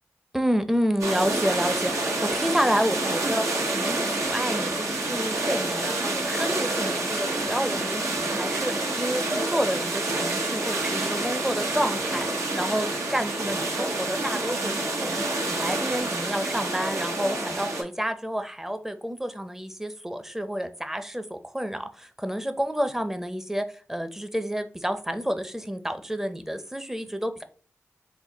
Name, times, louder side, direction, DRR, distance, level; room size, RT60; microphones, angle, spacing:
voice 1, 0.3-12.3 12.6-15.2 15.5-27.4, equal, 5° right, 9 dB, 0.6 m, -29 dB
sound 1, 1.0-17.8, right 2 dB, 75° right, 1.1 m, -28 dB
4.1 x 2.2 x 4.0 m, 0.40 s
cardioid pair, 50°, 5 cm